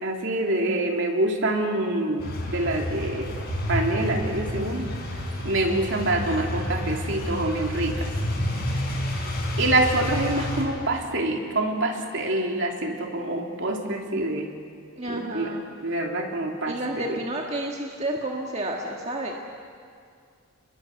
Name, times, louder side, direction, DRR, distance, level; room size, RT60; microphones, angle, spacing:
voice 1, 0.0-3.3 3.7-4.9 5.4-8.1 9.6-14.5 15.1-15.5 15.8-17.2, right 2 dB, 60° right, 1 dB, 3.2 m, -26 dB
sound 1, 2.2-10.6, left 1 dB, 45° left, 5.5 m, -29 dB
voice 2, 15.0-15.6 16.7-19.4, right 1 dB, 30° right, 0 dB, 1.7 m, -30 dB
30.0 x 21.5 x 7.8 m, 2.2 s
head